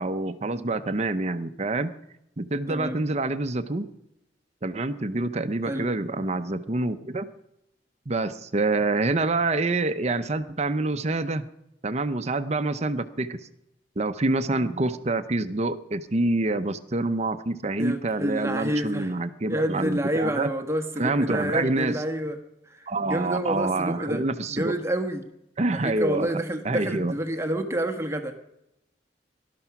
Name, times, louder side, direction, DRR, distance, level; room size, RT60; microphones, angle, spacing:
voice 1, 0.0-1.9 2.4-3.9 4.6-7.3 8.1-11.5 11.8-13.4 14.0-20.5 21.0-22.0 22.9-24.7 25.6-27.1, right 2 dB, 35° right, 11 dB, 0.7 m, -27 dB
voice 2, 17.8-19.2 19.5-22.4 22.7-24.2 24.5-25.2 25.7-28.4, right 1 dB, 15° right, 6 dB, 1.3 m, -28 dB
18.5 x 12.5 x 6.0 m, 0.84 s
head